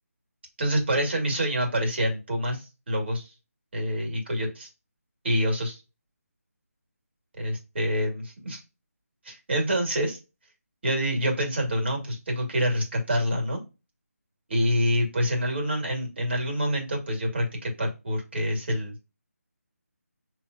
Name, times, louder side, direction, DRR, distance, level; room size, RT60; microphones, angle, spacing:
voice 1, 0.6-3.3 3.7-4.7 5.2-5.8 7.4-8.6 9.2-10.2 10.8-13.6 14.5-19.0, equal, 40° right, 1 dB, 2.0 m, -27 dB
5.4 x 3.0 x 2.6 m, 0.27 s
figure-of-eight pair, 175°, 8 cm